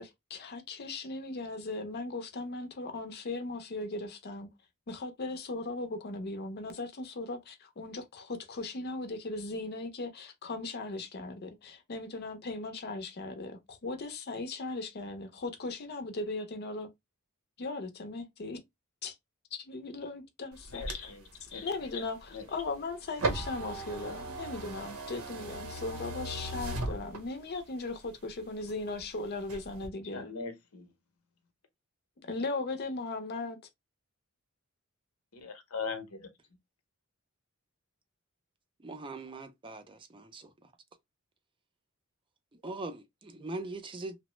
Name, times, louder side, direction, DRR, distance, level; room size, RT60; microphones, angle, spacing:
voice 1, 0.0-4.5 4.9-16.9 17.6-18.6 19.0-19.1 19.5-21.1 21.6-30.3 32.2-33.6, left 3 dB, 50° left, 0.6 m, -38 dB
sound 1, 20.5-27.6 28.0-29.0 29.4-29.9, right 2 dB, 75° right, 0.7 m, -38 dB
voice 2, 20.7-21.7 21.9-22.0 22.3-22.5 30.1-30.9 35.3-36.3, left 5 dB, 80° left, 0.8 m, -40 dB
voice 3, 38.8-40.5 42.6-44.2, right 2 dB, 25° right, 0.4 m, -41 dB
3.0 x 2.1 x 2.9 m
head